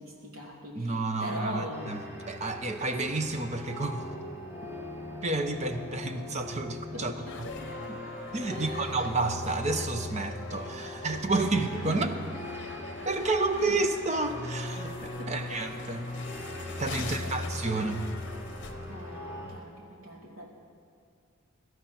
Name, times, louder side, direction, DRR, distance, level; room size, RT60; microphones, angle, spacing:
voice 1, 0.0-2.0 6.9-7.7 8.5-9.0 11.3-11.5 11.9-12.0 13.7-13.8 15.2-15.6 15.9-16.0 17.0-17.9 18.9-20.5, equal, 65° right, -1 dB, 2.5 m, -41 dB
voice 2, 0.7-2.0 2.3-4.1 5.2-7.1 8.3-12.1 13.0-16.1 16.8-18.1, right 3 dB, 30° right, 7 dB, 0.7 m, -30 dB
sound 1, 1.7-19.5, left 1 dB, 10° right, 2.8 m, -40 dB
sound 2, 7.2-19.2, left 4 dB, 55° left, 0.9 m, -46 dB
17.0 x 12.5 x 4.3 m, 2.4 s
head